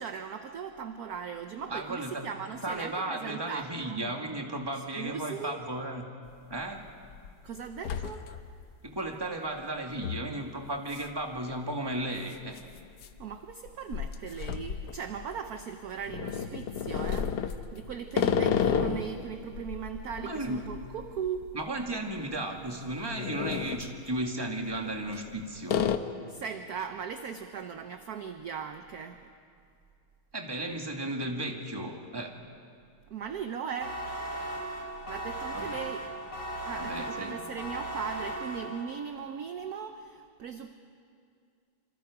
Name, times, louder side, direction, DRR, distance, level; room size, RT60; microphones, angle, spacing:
voice 1, 0.0-4.1 4.7-5.6 7.4-8.3 13.2-21.5 26.3-29.2 33.1-34.0 35.1-36.1 36.7-40.7, right 7 dB, 60° right, 7 dB, 1.1 m, -38 dB
voice 2, 1.7-2.3 2.6-6.0 6.5-6.8 8.8-12.6 20.2-20.6 21.5-25.8 30.3-32.3 35.5-35.8 36.8-37.4, right 1 dB, 10° right, 2 dB, 1.8 m, -34 dB
sound 1, 6.3-6.4 6.9-7.3 7.6-8.6 9.0-9.1 10.0-10.3 10.9-11.1 11.4-11.5 12.4-15.5 16.1-19.1 19.5-21.9 22.2-22.4 22.9-23.9 24.8-25.3 25.7-26.0, left 7 dB, 60° left, 1.3 m, -32 dB
sound 2, 33.8-39.1, right 1 dB, 80° left, 4.4 m, -37 dB
27.0 x 26.5 x 4.9 m, 2.3 s
omnidirectional pair, 2.3 m